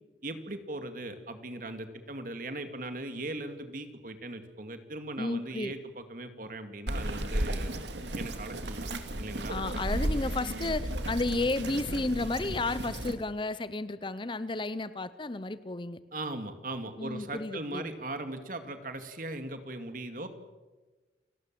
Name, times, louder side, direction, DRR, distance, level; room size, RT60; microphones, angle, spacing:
voice 1, 0.2-7.7 8.1-8.9 9.2-9.5 10.0-10.2 16.1-20.3, right 2 dB, 50° right, 8 dB, 2.3 m, -39 dB
voice 2, 5.2-5.7 9.5-16.0 17.0-17.9, left 2 dB, 25° left, 15 dB, 0.7 m, -32 dB
Bird vocalization bird call bird song, 6.9-13.1, right 1 dB, 90° right, 2.5 m, -34 dB
30.0 x 19.0 x 7.7 m, 1.3 s
head